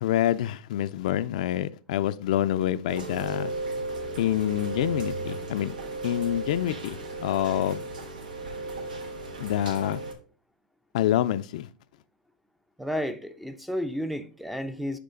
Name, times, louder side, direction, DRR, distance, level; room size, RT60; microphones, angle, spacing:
voice 1, 0.0-3.5 4.2-5.7 6.0-7.8 9.4-10.0 10.9-11.7, left 12 dB, 60° left, 0.4 m, -27 dB
Rain, 2.9-10.1, right 2 dB, 90° right, 1.5 m, -35 dB
voice 2, 12.8-15.0, equal, ahead, 0.5 m, -32 dB
9.6 x 3.2 x 3.8 m
hypercardioid pair, 135°, 4 cm